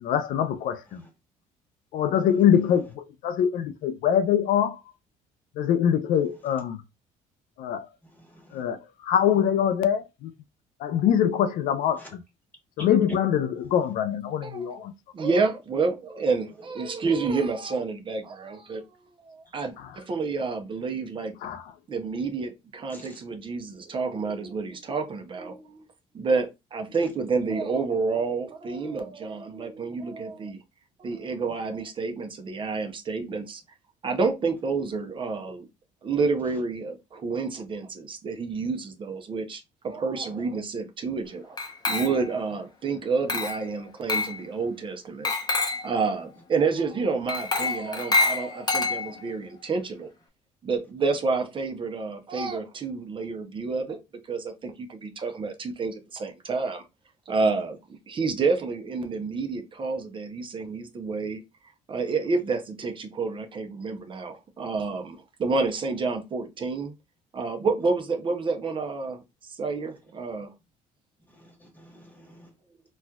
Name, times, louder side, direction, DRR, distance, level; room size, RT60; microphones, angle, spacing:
voice 1, 0.0-0.8 1.9-2.9 3.2-4.8 5.6-6.8 7.6-7.9 8.5-8.8 9.0-10.3 10.8-12.2 12.8-14.9 21.4-21.6, left 9 dB, 75° left, 0.4 m, -23 dB
voice 2, 8.0-8.6 12.0-12.1 12.8-12.9 22.9-23.2 71.3-72.5, equal, 10° left, 1.2 m, -48 dB
voice 3, 14.4-14.8 15.1-18.8 19.2-21.3 21.9-25.9 26.1-30.6 31.0-33.6 34.0-35.6 36.0-41.6 41.9-45.3 45.8-50.1 50.6-54.0 54.3-56.8 57.3-57.8 58.1-61.4 61.9-66.9 67.3-69.2 69.5-70.5, right 4 dB, 35° right, 0.6 m, -29 dB
Glass, 41.6-42.4 43.3-43.7 44.1-44.4 45.2-45.9 47.3-49.3, left 3 dB, 30° left, 0.7 m, -27 dB
4.1 x 2.3 x 2.3 m
cardioid pair, 110°, 15 cm